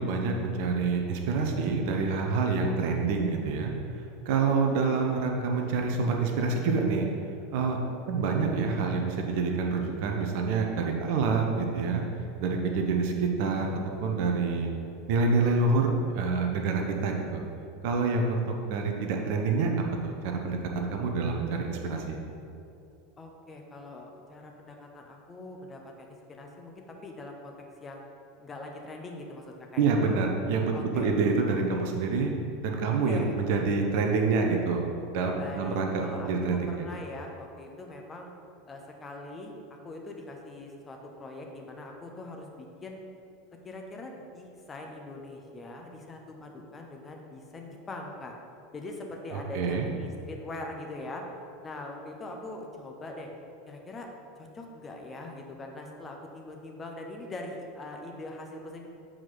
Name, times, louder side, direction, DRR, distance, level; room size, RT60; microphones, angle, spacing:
voice 1, 0.0-3.7 4.2-7.1 7.5-7.8 8.1-12.0 12.4-14.7 15.1-17.4 17.8-19.7 20.0-22.2 29.8-32.3 32.6-36.9 49.3-49.9, right 4 dB, 50° right, 2 dB, 0.8 m, -27 dB
voice 2, 23.2-27.5 27.8-28.1 28.4-29.9 30.7-31.1 32.9-33.4 35.3-38.3 38.7-39.5 39.8-43.0 43.6-48.3 48.7-51.2 51.6-53.3 53.7-54.1 54.4-58.9, left 2 dB, 20° left, 1 dB, 0.9 m, -42 dB
7.5 x 4.8 x 3.9 m, 2.6 s
figure-of-eight pair, 80°, 0 cm